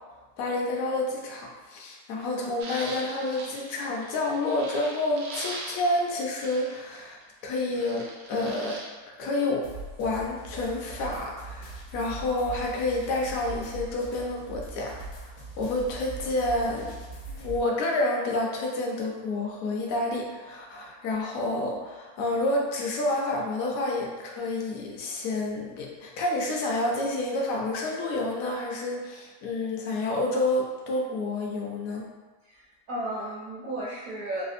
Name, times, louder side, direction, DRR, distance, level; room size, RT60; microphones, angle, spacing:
voice 1, 0.4-8.8 9.2-9.7 10.0-15.0 15.6-16.9 17.3-32.1, left 2 dB, 70° left, -1 dB, 1.0 m, -29 dB
sound 1, 2.6-7.2 7.6-8.9, right 2 dB, 85° right, 1.2 m, -41 dB
sound 2, 9.6-17.6, right 3 dB, 85° left, 1.3 m, -41 dB
voice 2, 32.4-34.4, right 1 dB, 65° right, -6 dB, 0.9 m, -34 dB
3.4 x 2.5 x 2.4 m, 1.2 s
omnidirectional pair, 1.7 m